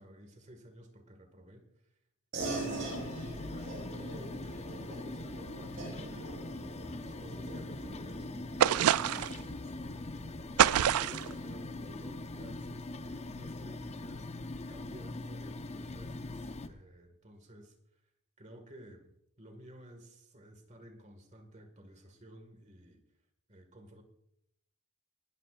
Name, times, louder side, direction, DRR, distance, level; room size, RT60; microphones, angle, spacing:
voice 1, 0.0-1.7 2.3-9.2 9.5-17.7 18.4-19.1 19.4-23.0 23.5-24.0, right 1 dB, 30° right, 6 dB, 1.9 m, -53 dB
sound 1, 2.3-12.2, right 3 dB, 55° right, 5.7 m, -44 dB
sound 2, 2.4-16.7, left 2 dB, 30° left, 0.6 m, -42 dB
sound 3, 8.6-9.4 10.6-11.3, right 10 dB, 90° right, 0.3 m, -25 dB
20.5 x 13.0 x 2.5 m, 0.75 s
head